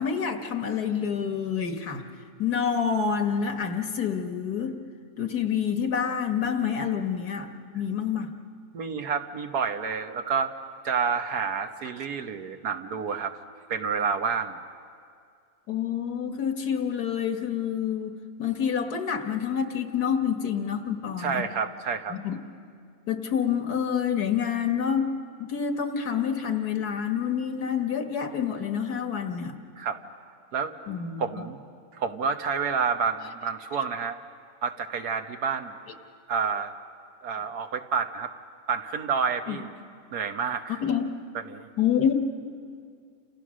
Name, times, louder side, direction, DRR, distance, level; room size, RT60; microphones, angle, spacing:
voice 1, 0.0-2.0 2.4-4.7 5.2-8.3 15.7-21.5 22.1-22.4 23.1-25.1 25.4-29.5 30.9-31.4 39.5-39.6 40.8-41.1 41.8-42.1, left 7 dB, 75° left, 7 dB, 2.0 m, -27 dB
voice 2, 8.7-10.5 10.8-13.4 13.7-14.6 21.2-22.2 29.8-30.0 30.5-30.7 31.2-31.6 31.9-34.2 34.6-35.7 36.3-36.7 37.2-38.3 38.7-39.7 40.1-40.8 41.4-41.7, right 6 dB, 75° right, 7 dB, 1.7 m, -29 dB
29.5 x 28.0 x 6.3 m, 2.3 s
omnidirectional pair, 1.7 m